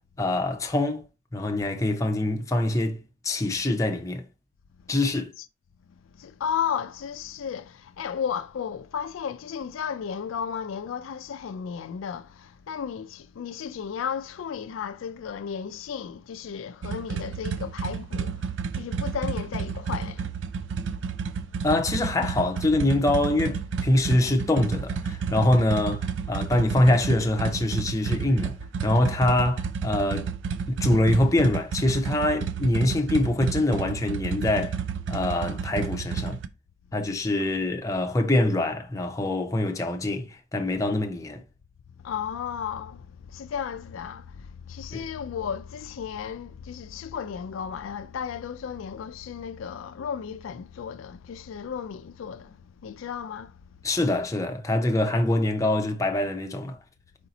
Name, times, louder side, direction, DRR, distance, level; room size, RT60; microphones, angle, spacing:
voice 1, 0.2-1.0 1.3-4.2 4.9-5.3 21.6-28.5 28.8-30.3 30.7-34.8 35.1-36.4 36.9-41.4 44.9-45.0 53.8-56.8, left 1 dB, 15° left, 0.6 m, -24 dB
voice 2, 6.2-20.3 42.0-53.6, left 7 dB, 80° left, 0.4 m, -34 dB
sound 1, 16.8-36.5, right 6 dB, 65° right, 0.4 m, -31 dB
4.9 x 2.7 x 3.9 m
head